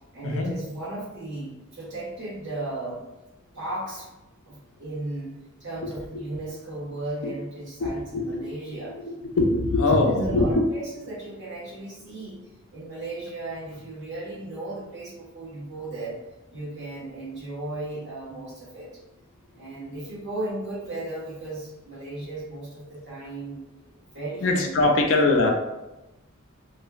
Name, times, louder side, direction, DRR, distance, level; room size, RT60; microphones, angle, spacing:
voice 1, 0.1-3.0 3.5-4.1 4.5-5.3 5.6-8.9 10.0-16.2 16.5-18.9 19.5-23.6 24.1-24.9, right 2 dB, 55° right, -7 dB, 1.2 m, -35 dB
voice 2, 7.8-8.4 9.3-10.6 24.4-25.5, left 2 dB, 65° left, 3 dB, 0.4 m, -22 dB
3.0 x 2.3 x 2.3 m, 0.99 s
head